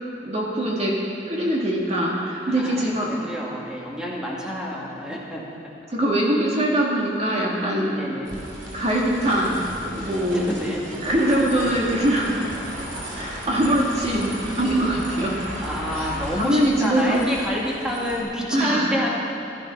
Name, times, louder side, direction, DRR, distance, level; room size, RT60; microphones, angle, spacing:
voice 1, 0.2-0.9 1.3-3.1 5.9-8.0 8.7-9.6 9.9-10.5 11.0-12.3 13.1-15.4 15.9-16.1 16.3-17.2 18.5-18.9, right 1 dB, 35° right, -3 dB, 1.9 m, -22 dB
voice 2, 2.5-5.4 7.9-8.3 10.3-10.8 15.6-19.1, equal, 5° right, -4 dB, 2.1 m, -28 dB
sound 1, 8.2-18.2, right 1 dB, 75° right, 3.1 m, -35 dB
15.0 x 13.5 x 5.6 m, 2.9 s
head